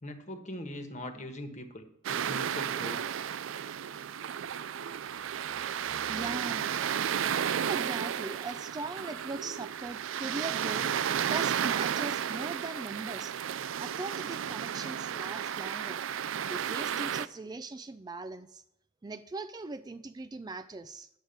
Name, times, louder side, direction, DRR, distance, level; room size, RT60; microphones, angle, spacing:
voice 1, 0.0-3.2, left 1 dB, 40° left, 7 dB, 1.3 m, -41 dB
sound 1, 2.0-17.3, right 8 dB, 90° right, 0.4 m, -33 dB
voice 2, 6.1-6.6 7.5-10.9 11.3-13.4 13.8-16.0 16.5-18.6 19.0-21.1, right 3 dB, 20° right, 12 dB, 0.3 m, -40 dB
10.0 x 6.3 x 8.0 m, 0.77 s
head